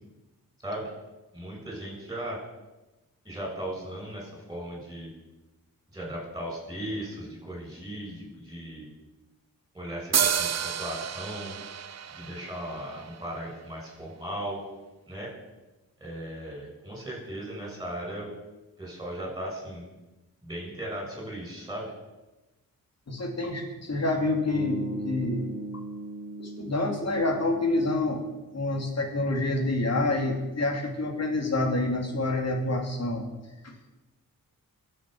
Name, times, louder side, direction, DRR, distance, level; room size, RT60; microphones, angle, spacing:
voice 1, 1.3-2.4 3.2-5.1 5.9-8.9 9.7-11.6 12.1-14.6 15.1-15.3 16.0-18.3 18.8-19.9 20.4-21.9, right 1 dB, 10° right, -2 dB, 6.7 m, -37 dB
sound 1, 10.1-13.7, right 8 dB, 50° right, 0.7 m, -30 dB
voice 2, 23.1-25.5 26.4-28.2 28.5-33.3 33.6-33.7, left 2 dB, 45° left, 2 dB, 3.1 m, -27 dB
sound 2, 24.5-28.6, right 1 dB, 30° left, 4.7 m, -38 dB
22.5 x 8.1 x 6.3 m, 1.1 s
wide cardioid pair, 130°, 35 cm